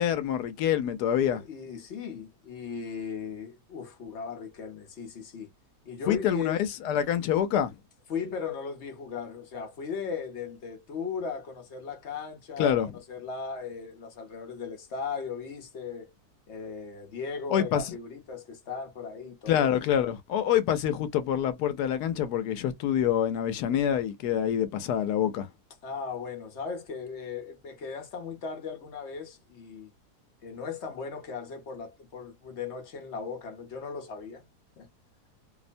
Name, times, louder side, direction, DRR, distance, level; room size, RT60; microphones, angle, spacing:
voice 1, 0.0-1.4 6.1-6.6 6.8-7.7 12.6-12.9 17.5-17.9 19.5-25.5, left 9 dB, 80° left, 1.1 m, -26 dB
voice 2, 1.2-5.5 5.9-6.6 8.1-12.8 13.1-16.1 16.5-19.7 25.8-29.9 30.4-34.4 34.8-34.9, left 5 dB, 50° left, 1.0 m, -37 dB
2.9 x 2.0 x 2.5 m
omnidirectional pair, 1.7 m